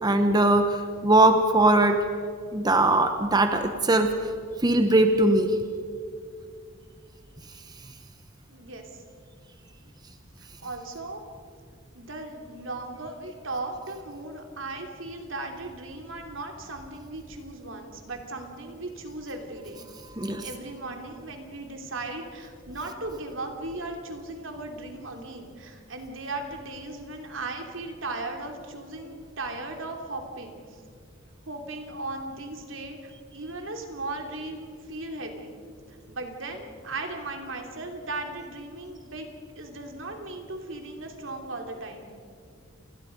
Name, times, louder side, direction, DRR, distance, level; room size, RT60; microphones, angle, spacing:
voice 1, 0.0-2.0 2.5-4.1 4.6-5.6 20.2-20.5, right 2 dB, 20° right, 7 dB, 1.0 m, -20 dB
voice 2, 8.5-9.0 10.4-11.2 11.9-19.8 20.2-30.8 31.5-35.5 35.9-39.3 39.5-42.1, right 2 dB, 70° right, 4 dB, 3.2 m, -37 dB
28.5 x 21.5 x 5.3 m, 2.2 s
head